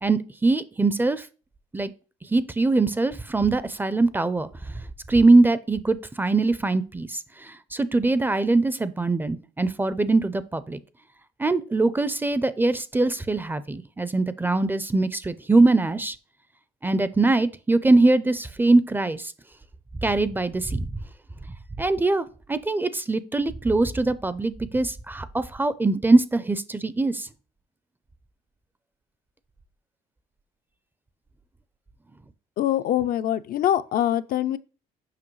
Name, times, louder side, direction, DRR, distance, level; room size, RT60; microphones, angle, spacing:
voice 1, 0.0-1.2 1.7-1.9 2.3-4.5 5.1-10.8 11.4-16.2 16.8-19.3 20.0-20.9 21.8-27.3, right 2 dB, 10° right, 0.4 m, -22 dB
voice 2, 32.6-34.6, left 11 dB, 60° left, 0.4 m, -24 dB
7.4 x 5.4 x 3.1 m
cardioid pair, 110°, 17 cm